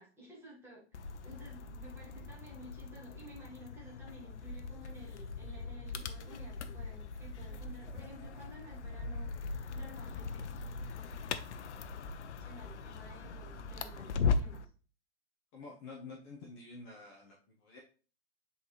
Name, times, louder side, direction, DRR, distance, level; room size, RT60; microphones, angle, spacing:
voice 1, 0.0-9.3 9.7-10.4 12.4-14.7, equal, 5° right, -4 dB, 1.6 m, -53 dB
sound 1, 0.9-14.7, left 4 dB, 80° left, 0.8 m, -39 dB
voice 2, 15.5-17.8, left 3 dB, 25° left, -2 dB, 1.0 m, -49 dB
8.1 x 4.1 x 3.2 m, 0.38 s
hypercardioid pair, 160°, 34 cm